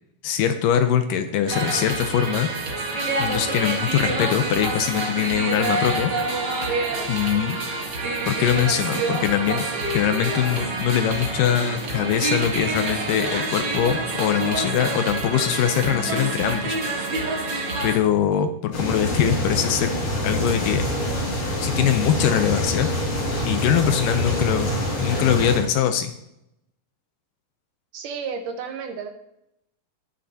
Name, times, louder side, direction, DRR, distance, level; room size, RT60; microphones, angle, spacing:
voice 1, 0.2-2.5 3.2-6.1 7.1-7.6 8.3-9.6 9.9-16.8 17.8-19.9 20.2-20.9 21.6-22.9 23.4-24.7 25.0-26.1, left 9 dB, 80° left, 8 dB, 2.1 m, -22 dB
sound 1, 1.5-18.0, right 2 dB, 50° right, 1.4 m, -27 dB
sound 2, 10.3-17.8, equal, 40° left, 4.6 m, -39 dB
sound 3, 18.7-25.6, equal, 60° left, 5.9 m, -25 dB
voice 2, 27.9-29.1, right 6 dB, 70° right, 5 dB, 2.3 m, -32 dB
19.5 x 6.5 x 2.8 m, 0.83 s
omnidirectional pair, 4.1 m